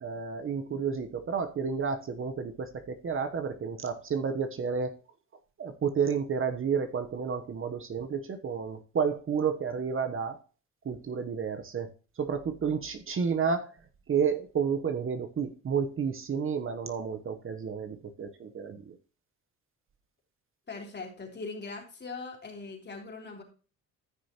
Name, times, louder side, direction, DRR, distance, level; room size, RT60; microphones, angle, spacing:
voice 1, 0.0-4.9 5.6-10.4 10.8-11.9 12.2-13.7 14.1-19.0, right 6 dB, 45° right, 8 dB, 1.1 m, -31 dB
voice 2, 20.7-23.4, left 3 dB, 35° left, 1 dB, 3.3 m, -40 dB
14.5 x 6.3 x 3.0 m, 0.36 s
cardioid pair, 90°, 30 cm